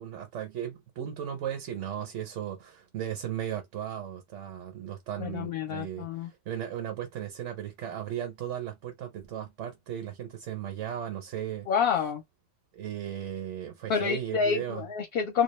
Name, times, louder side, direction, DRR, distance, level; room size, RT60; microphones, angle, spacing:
voice 1, 0.0-11.7 12.7-14.9, right 10 dB, 90° right, 1.0 m, -36 dB
voice 2, 5.2-6.3 11.7-12.2 13.9-15.4, left 6 dB, 60° left, 0.8 m, -28 dB
2.3 x 2.2 x 3.0 m
omnidirectional pair, 1.2 m